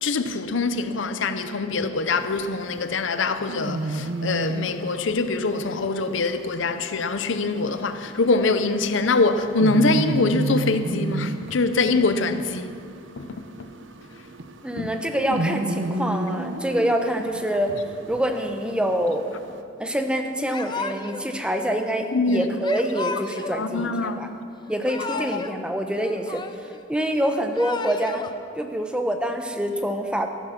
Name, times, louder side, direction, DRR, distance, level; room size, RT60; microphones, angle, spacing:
voice 1, 0.0-12.7 13.2-13.3 14.8-14.9 22.1-22.5 23.5-24.2 25.1-25.3, left 3 dB, 70° left, 0.7 m, -24 dB
sound 1, 2.1-19.6, right 2 dB, 70° right, 0.8 m, -33 dB
voice 2, 14.6-17.8 18.1-19.3 19.8-24.3 24.7-26.4 26.9-28.3 28.6-30.3, equal, 5° right, 0.8 m, -26 dB
Yell / Crying sobbing, 20.5-21.3 22.6-23.6 24.6-25.6 25.9-26.8 27.4-28.3, left 4 dB, 25° left, 0.6 m, -34 dB
14.5 x 12.0 x 5.9 m
head